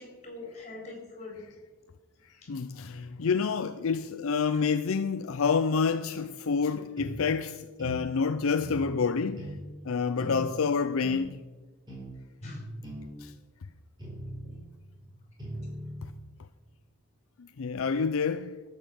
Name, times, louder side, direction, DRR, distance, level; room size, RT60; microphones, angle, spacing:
voice 1, 0.0-1.4 2.4-2.5 2.8-2.9 4.5-4.6 12.4-12.8 14.4-14.5 15.0-15.1, left 2 dB, 30° left, 4.1 m, -43 dB
voice 2, 2.5-9.5 9.8-11.4 13.2-13.3 16.0-16.1 17.4-18.6, left 5 dB, 70° left, 0.5 m, -28 dB
sound 1, 7.0-7.2 7.8-8.0 8.6-8.8 9.4-9.6 10.2-10.4 11.0-11.2 11.9-12.1 12.8-13.1 14.0-14.6 15.4-16.1, equal, 20° right, 4.7 m, -39 dB
13.0 x 7.3 x 7.4 m
head